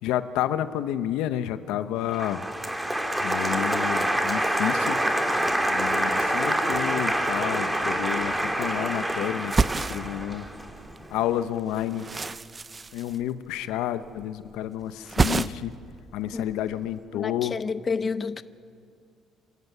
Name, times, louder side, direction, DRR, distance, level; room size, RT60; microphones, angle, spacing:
voice 1, 0.0-2.4 3.2-5.0 5.6-10.5 11.1-12.1 12.9-15.7 16.1-17.6, left 12 dB, 90° left, 0.9 m, -30 dB
Applause, 2.1-11.2, right 1 dB, 5° right, 2.6 m, -26 dB
sound 1, 7.8-7.9 8.1-9.0 9.3-11.0 11.3-13.8 14.0-14.6 14.8-15.9 16.1-16.9, right 4 dB, 25° right, 0.6 m, -29 dB
voice 2, 17.1-18.4, left 5 dB, 30° left, 0.7 m, -29 dB
27.0 x 13.5 x 9.3 m
cardioid pair, 100°, 0 cm